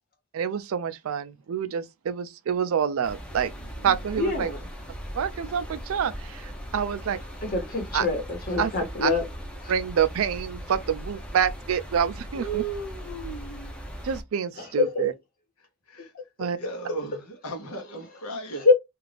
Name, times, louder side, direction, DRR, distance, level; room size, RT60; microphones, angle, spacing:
voice 1, 0.3-3.5 3.8-4.5 5.2-7.2 7.9-8.1 8.6-8.7 9.0-9.1 9.7-12.6 14.0-15.1 16.4-16.6, right 7 dB, 65° right, 0.4 m, -27 dB
sound 1, 3.0-14.2, equal, 5° left, 0.5 m, -39 dB
voice 2, 4.1-4.6 7.4-9.3 14.6-15.0 18.5-18.7, left 4 dB, 40° left, 1.1 m, -25 dB
voice 3, 12.3-13.7 15.9-16.1 16.6-18.7, right 4 dB, 85° left, 0.9 m, -35 dB
2.4 x 2.4 x 3.2 m
head